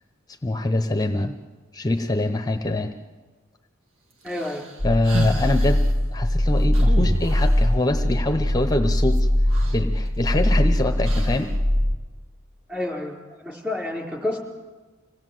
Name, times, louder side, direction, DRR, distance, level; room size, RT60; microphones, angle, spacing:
voice 1, 0.4-1.4 1.7-2.9 4.8-5.8 6.1-9.3 9.7-11.5, left 2 dB, 20° left, 6 dB, 0.9 m, -24 dB
voice 2, 4.2-4.6 12.7-14.4, left 2 dB, 5° right, -1 dB, 4.2 m, -29 dB
sound 1, 4.3-5.9 6.7-7.7 9.2-9.3 9.5-10.5 11.0-11.6, right 2 dB, 70° right, 2.0 m, -32 dB
sound 2, 4.8-11.9, left 1 dB, 85° right, 6.5 m, -21 dB
26.5 x 18.0 x 7.8 m, 1.3 s
head